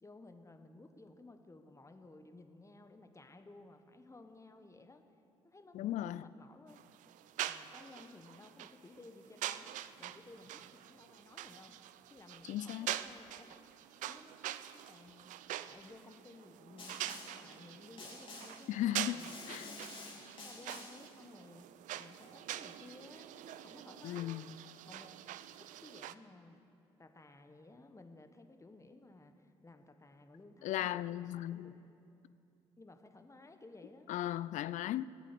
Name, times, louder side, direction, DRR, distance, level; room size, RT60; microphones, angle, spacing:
voice 1, 0.0-5.0 5.4-6.8 7.4-9.7 10.0-11.7 12.1-13.6 14.0-14.4 14.8-15.3 15.7-20.1 20.4-21.6 21.9-24.4 24.8-25.1 25.6-26.6 27.0-31.7 32.8-34.1, left 2 dB, 20° left, 1.3 m, -56 dB
voice 2, 5.7-6.3 12.5-12.9 18.7-19.2 19.5-19.7 24.0-24.6 30.6-31.8 34.1-35.0, left 13 dB, 60° left, 0.4 m, -36 dB
sound 1, 6.7-26.1, right 12 dB, 65° right, 0.5 m, -45 dB
Snare drum, 16.8-17.5 18.0-18.7 19.2-21.1, left 3 dB, 40° left, 3.1 m, -50 dB
17.5 x 8.3 x 6.9 m
hypercardioid pair, 45°, 14 cm